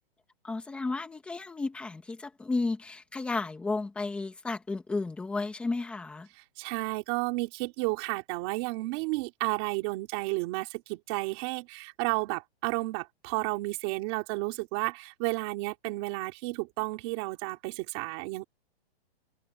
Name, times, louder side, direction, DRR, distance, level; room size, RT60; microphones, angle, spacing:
voice 1, 0.4-6.3, left 3 dB, 5° left, 1.6 m, -33 dB
voice 2, 6.6-18.4, right 23 dB, 25° right, 3.7 m, -32 dB
hypercardioid pair, 175°, 32 cm